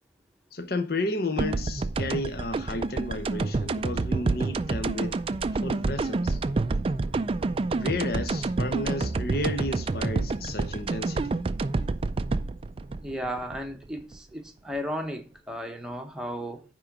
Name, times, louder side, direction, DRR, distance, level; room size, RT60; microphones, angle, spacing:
voice 1, 0.5-5.2 5.5-6.4 7.7-11.3, left 2 dB, 50° left, 0.8 m, -32 dB
sound 1, 1.4-14.2, right 3 dB, 30° right, 0.3 m, -28 dB
voice 2, 13.0-16.6, equal, 5° right, 0.9 m, -34 dB
9.9 x 3.8 x 5.9 m
head